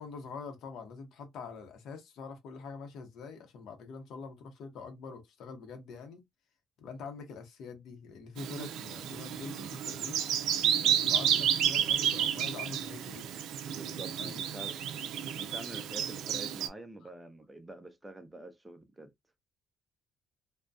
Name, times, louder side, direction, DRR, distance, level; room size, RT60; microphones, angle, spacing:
voice 1, 0.0-6.2 6.8-10.2 10.8-13.3 14.2-14.4 17.0-17.1, left 4 dB, 80° left, 0.8 m, -45 dB
Bird vocalization bird call bird song, 8.4-16.7, right 9 dB, 90° right, 0.4 m, -31 dB
voice 2, 13.7-14.8 15.3-19.1, right 1 dB, 10° right, 0.5 m, -47 dB
2.5 x 2.2 x 2.3 m
cardioid pair, 115°, 0 cm